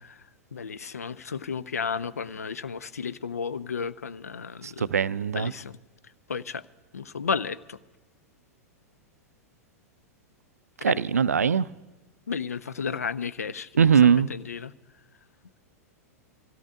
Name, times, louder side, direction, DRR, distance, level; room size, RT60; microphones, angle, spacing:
voice 1, 0.5-4.9 5.3-5.8 6.3-6.6 6.9-7.8 10.8-11.0 12.3-13.7 14.3-14.7, left 6 dB, 80° left, 0.5 m, -33 dB
voice 2, 4.6-5.5 10.8-11.7 13.8-14.3, right 7 dB, 80° right, 0.4 m, -21 dB
25.0 x 16.5 x 2.5 m
figure-of-eight pair, 95°, 8 cm